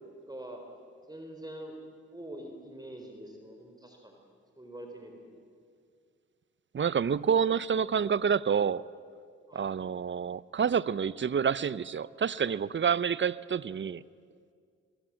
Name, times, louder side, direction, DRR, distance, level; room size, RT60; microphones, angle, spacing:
voice 1, 0.3-0.6 1.1-1.8 2.1-4.2 4.6-5.2 9.5-9.7, right 1 dB, 10° right, 2 dB, 4.1 m, -44 dB
voice 2, 6.7-8.8 9.5-14.0, right 7 dB, 35° right, 20 dB, 0.7 m, -28 dB
23.0 x 22.0 x 7.6 m, 2.2 s
hypercardioid pair, 40°, 31 cm